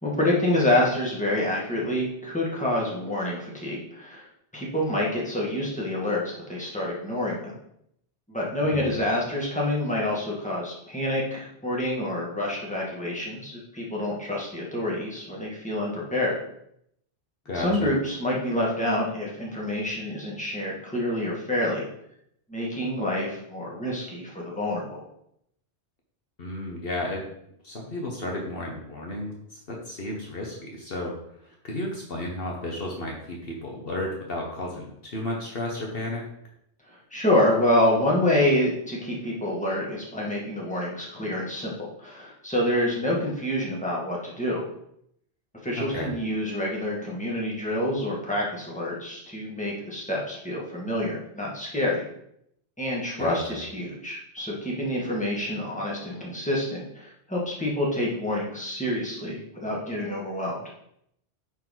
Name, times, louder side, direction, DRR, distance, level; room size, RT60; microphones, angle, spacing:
voice 1, 0.0-4.3 4.5-7.6 8.3-16.3 17.5-21.9 22.5-25.0 36.9-41.7 42.0-44.6 45.6-52.0 52.8-60.6, left 1 dB, 5° left, -5 dB, 2.1 m, -27 dB
voice 2, 8.6-9.0 17.4-17.9 26.4-27.2 27.6-36.3 45.8-46.1 53.2-53.6, left 1 dB, 55° left, -1 dB, 1.4 m, -33 dB
10.5 x 4.7 x 3.9 m, 0.74 s
omnidirectional pair, 1.2 m